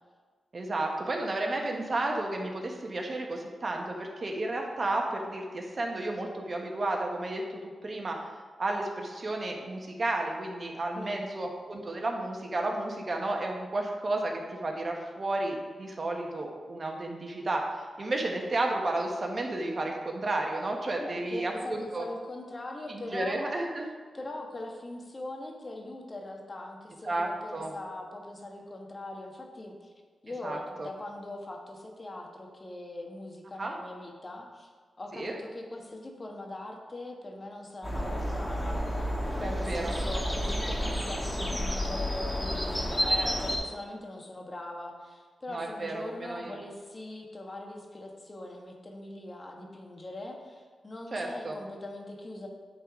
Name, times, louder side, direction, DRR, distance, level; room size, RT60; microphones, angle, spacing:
voice 1, 0.5-8.2 8.6-22.0 22.9-23.8 27.0-27.7 30.4-30.9 33.6-33.8 35.1-35.4 39.4-39.9 43.0-43.4 45.5-46.6 51.1-51.6, right 2 dB, 50° right, 1 dB, 1.3 m, -32 dB
voice 2, 20.9-23.6 24.1-29.9 30.2-34.7 35.0-39.1 39.4-52.5, left 2 dB, 40° left, 1 dB, 1.4 m, -41 dB
sound 1, 37.8-43.6, equal, 10° left, 1.5 m, -30 dB
8.9 x 4.1 x 4.8 m, 1.5 s
cardioid pair, 55°, 0 cm